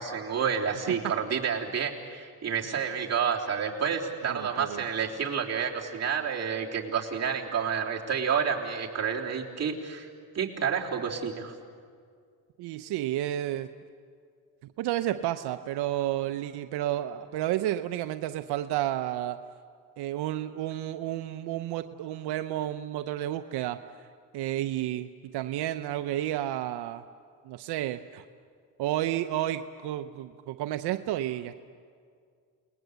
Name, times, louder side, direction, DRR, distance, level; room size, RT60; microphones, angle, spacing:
voice 1, 0.0-10.1 10.3-11.5, right 7 dB, 40° right, -2 dB, 3.5 m, -29 dB
voice 2, 4.2-4.9 12.6-13.7 14.8-19.4 20.0-23.8 24.3-27.0 27.4-28.2 28.8-31.6, right 13 dB, 85° right, 9 dB, 0.8 m, -31 dB
29.0 x 20.5 x 8.0 m, 2.2 s
cardioid pair, 85°, 38 cm